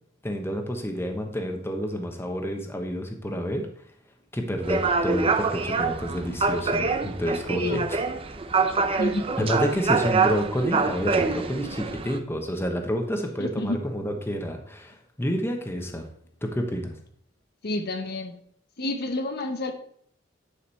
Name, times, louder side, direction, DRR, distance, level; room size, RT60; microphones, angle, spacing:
voice 1, 0.2-3.6 4.3-8.0 9.4-16.0 16.4-16.9, equal, 15° left, 3 dB, 1.1 m, -29 dB
sound 1, 4.6-12.2, right 4 dB, 30° right, 0.6 m, -25 dB
voice 2, 7.5-7.9 9.0-9.3 13.4-13.8 17.6-18.3 18.8-19.7, left 2 dB, 55° left, 6 dB, 0.8 m, -29 dB
9.7 x 5.2 x 4.2 m, 0.63 s
head